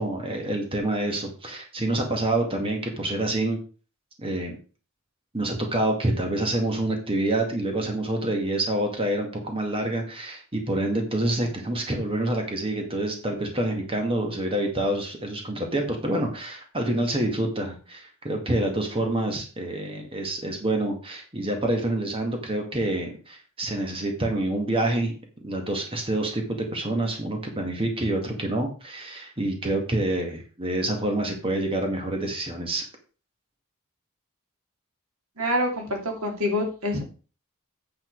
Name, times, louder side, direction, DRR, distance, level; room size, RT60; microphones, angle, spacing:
voice 1, 0.0-3.6 4.2-4.6 5.3-25.1 25.4-32.8, right 1 dB, 25° right, 3 dB, 2.1 m, -27 dB
voice 2, 35.4-37.0, left 1 dB, 85° right, 2 dB, 2.9 m, -26 dB
8.7 x 7.5 x 4.7 m, 0.36 s
head